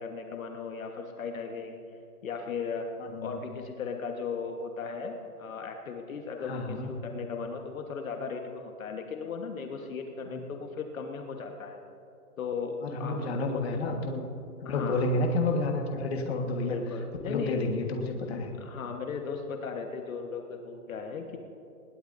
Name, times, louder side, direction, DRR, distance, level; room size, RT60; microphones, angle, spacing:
voice 1, 0.0-1.8 2.2-2.9 3.2-11.8 12.4-13.8 14.6-15.0 16.6-17.6 18.2-21.4, left 5 dB, 60° left, 3 dB, 1.4 m, -37 dB
voice 2, 3.0-3.4 6.4-6.9 10.3-10.4 12.8-14.2 14.6-16.8 17.2-18.5, left 2 dB, 40° left, 2 dB, 1.6 m, -30 dB
20.5 x 17.0 x 2.7 m, 2.7 s
hypercardioid pair, 175°, 46 cm